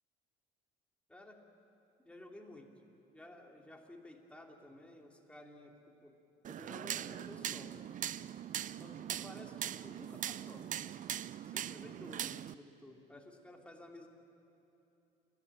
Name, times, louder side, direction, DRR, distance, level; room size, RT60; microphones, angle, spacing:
voice 1, 1.1-1.5 2.0-2.8 3.1-6.2 6.5-7.8 8.6-10.7 11.4-14.1, left 1 dB, 5° left, 1 dB, 3.0 m, -54 dB
sound 1, 6.4-12.5, right 10 dB, 45° right, 0.5 m, -41 dB
28.5 x 12.0 x 9.0 m, 2.9 s
supercardioid pair, 85°, 19 cm